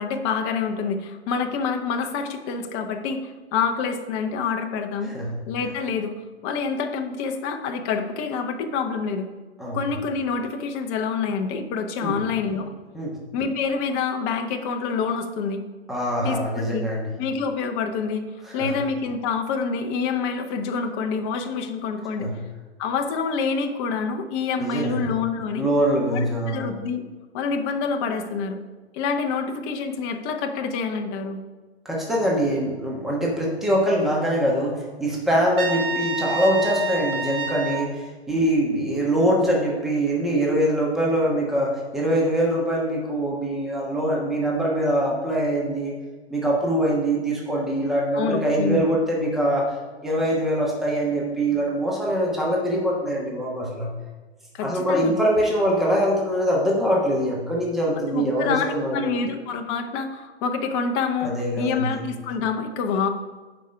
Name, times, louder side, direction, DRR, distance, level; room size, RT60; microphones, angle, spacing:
voice 1, 0.0-5.1 5.5-6.1 6.4-9.3 9.7-12.7 13.3-15.7 16.2-16.4 16.7-16.8 17.2-18.3 18.5-22.3 22.8-25.7 26.1-27.0 27.3-28.6 28.9-31.4 48.1-48.8 54.5-55.2 58.1-63.1, left 5 dB, 25° left, 5 dB, 0.8 m, -27 dB
voice 2, 5.0-5.4 9.6-9.8 12.0-12.2 12.9-13.1 15.9-17.1 18.5-18.7 22.2-22.3 24.6-25.0 25.6-26.6 31.8-45.9 46.3-49.8 50.0-53.9 54.6-59.2 61.2-62.0, right 1 dB, ahead, -3 dB, 1.3 m, -23 dB
Trumpet, 35.6-37.9, right 4 dB, 55° right, 1.2 m, -28 dB
9.0 x 5.2 x 5.7 m, 1.3 s
hypercardioid pair, 130°, 33 cm